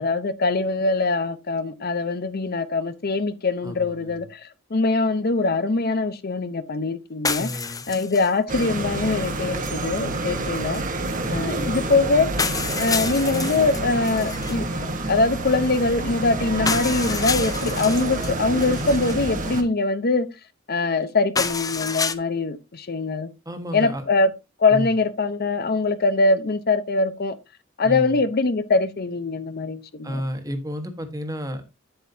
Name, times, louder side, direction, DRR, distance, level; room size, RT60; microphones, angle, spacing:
voice 1, 0.0-7.5 7.9-10.8 11.3-12.3 12.8-20.3 20.7-23.3 23.7-24.3 24.6-27.4 27.8-30.2, left 3 dB, 50° left, 0.8 m, -23 dB
voice 2, 3.6-4.2 7.4-7.8 10.2-10.6 11.2-11.7 16.6-17.0 23.4-24.0 24.7-24.9 27.8-28.2 30.0-31.6, equal, 20° right, 1.5 m, -32 dB
sound 1, 7.2-8.3 8.6-8.7 10.7-10.8 11.7-11.8 12.4-14.6 16.7-18.3 18.6-19.2 21.4-22.2, left 5 dB, 20° left, 0.6 m, -28 dB
sound 2, 8.5-19.6, right 2 dB, 40° right, 1.4 m, -28 dB
9.2 x 8.0 x 2.8 m
head